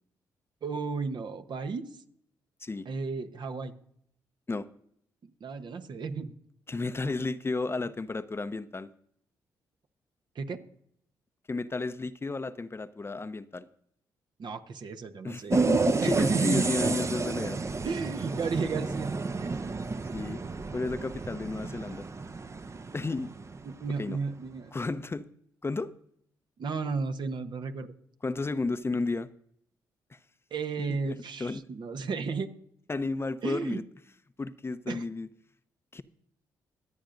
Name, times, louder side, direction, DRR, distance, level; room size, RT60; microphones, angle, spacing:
voice 1, 0.6-1.9 2.8-3.7 5.2-6.3 10.3-10.6 14.4-15.6 16.0-16.7 17.8-19.6 23.6-24.7 26.6-27.9 30.5-32.5 33.4-33.8 34.9-35.0, right 5 dB, 55° right, 7 dB, 1.0 m, -33 dB
voice 2, 6.7-8.9 11.5-13.7 15.2-17.6 20.1-20.4 20.7-22.0 22.9-23.3 24.0-24.2 24.7-25.3 25.6-25.9 28.2-29.3 30.1-30.2 31.0-31.6 32.9-33.8 34.4-35.3 35.9-36.0, left 3 dB, 25° left, 13 dB, 0.7 m, -32 dB
sound 1, 15.5-23.9, right 4 dB, 35° right, 0.7 m, -31 dB
23.0 x 8.7 x 2.6 m, 0.68 s
hypercardioid pair, 45°, 9 cm